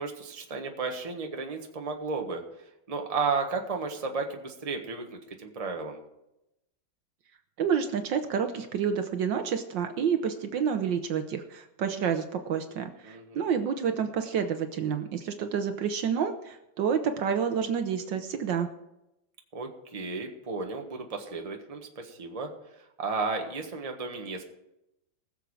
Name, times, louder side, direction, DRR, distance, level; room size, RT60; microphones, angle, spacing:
voice 1, 0.0-2.4 2.9-6.0 13.0-13.5 19.5-22.5 23.0-24.4, right 4 dB, 20° right, 3 dB, 1.3 m, -33 dB
voice 2, 7.6-18.7, right 7 dB, 70° right, 7 dB, 1.4 m, -29 dB
20.5 x 7.1 x 4.9 m, 0.89 s
omnidirectional pair, 2.2 m